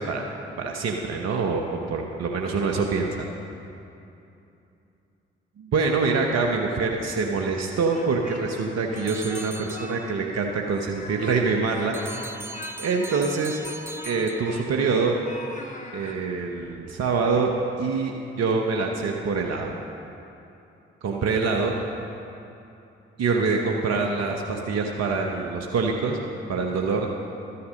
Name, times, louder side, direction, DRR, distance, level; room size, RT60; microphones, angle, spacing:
voice 1, 0.0-3.2 5.6-12.0 12.8-13.6 14.0-15.2 15.9-17.5 17.8-19.7 21.0-21.8 23.2-26.2 26.5-27.1, right 4 dB, 60° right, 2 dB, 1.0 m, -25 dB
Speech, 7.7-8.6 8.9-10.0 10.3-10.4 10.9-15.0 15.2-16.2, left 2 dB, 25° left, 1.7 m, -42 dB
sound 1, 9.0-10.3 11.9-14.9, right 2 dB, 10° right, 0.7 m, -40 dB
12.5 x 7.0 x 6.4 m, 2.8 s
hypercardioid pair, 40°, 29 cm